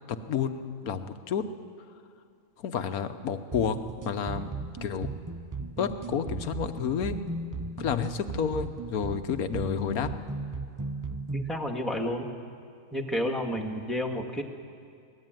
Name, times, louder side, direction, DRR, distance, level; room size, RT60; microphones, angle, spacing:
voice 1, 0.1-1.4 2.6-3.8 4.0-4.5 4.8-5.1 5.8-7.2 7.8-10.1, left 7 dB, 75° left, 10 dB, 1.5 m, -30 dB
sound 1, 3.5-11.5, right 3 dB, 25° right, 0.4 m, -36 dB
voice 2, 11.3-12.3 12.9-14.4, equal, ahead, 3 dB, 1.7 m, -30 dB
24.5 x 18.5 x 9.1 m, 2.3 s
omnidirectional pair, 1.5 m